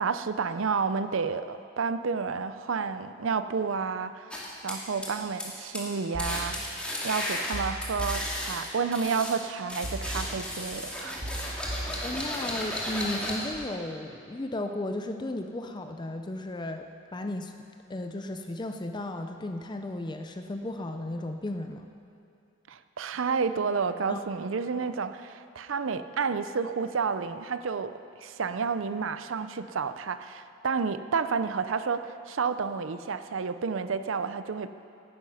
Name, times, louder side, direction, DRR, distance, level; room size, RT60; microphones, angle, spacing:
voice 1, 0.0-11.9 22.7-27.9 28.2-34.7, right 5 dB, 75° right, 11 dB, 0.6 m, -30 dB
sound 1, 4.3-5.5 5.7-5.9 6.2-9.3 9.7-13.6, left 1 dB, 5° left, 2.1 m, -34 dB
sound 2, 6.1-7.1 7.5-9.0 9.8-10.8 11.2-12.7 13.1-13.5, right 1 dB, 45° right, 1.7 m, -38 dB
voice 2, 12.0-17.5 17.9-21.9 24.1-24.2 24.7-24.9, left 1 dB, 20° left, 5 dB, 0.5 m, -35 dB
17.0 x 9.7 x 5.7 m, 2.6 s
head